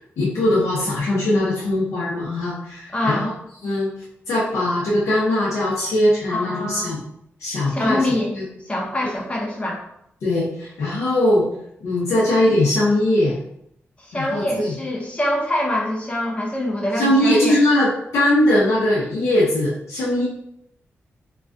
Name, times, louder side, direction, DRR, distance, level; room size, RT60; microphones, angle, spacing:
voice 1, 0.0-3.3 3.6-3.9 4.3-7.0 7.4-8.1 8.3-8.5 10.2-11.5 11.8-13.4 14.1-14.7 16.9-20.2, left 1 dB, 85° left, -8 dB, 0.7 m, -20 dB
voice 2, 2.9-3.3 6.3-6.9 7.7-8.3 8.7-9.8 14.0-17.6, left 1 dB, 25° left, -2 dB, 0.6 m, -24 dB
2.3 x 2.2 x 2.4 m, 0.74 s
cardioid pair, 65°, 5 cm